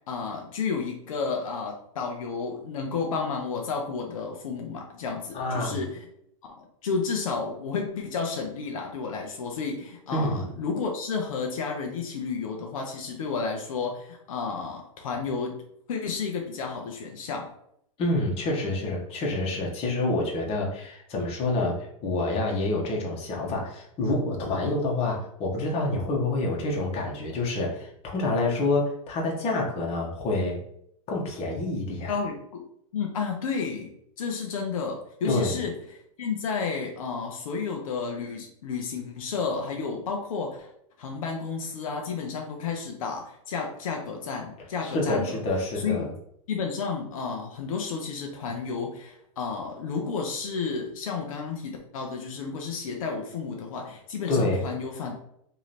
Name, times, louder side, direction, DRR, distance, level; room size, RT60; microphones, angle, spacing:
voice 1, 0.1-6.1 6.5-15.6 15.9-17.5 32.1-32.6 32.9-33.9 34.2-40.7 41.0-45.4 45.8-46.1 46.5-55.2, left 5 dB, 75° left, 2 dB, 0.7 m, -31 dB
voice 2, 5.3-5.8 10.1-10.5 18.0-30.6 31.1-32.2 35.2-35.6 44.8-46.1 54.3-54.7, left 2 dB, 35° left, -1 dB, 1.3 m, -27 dB
3.1 x 2.9 x 4.1 m, 0.73 s
hypercardioid pair, 120°, 18 cm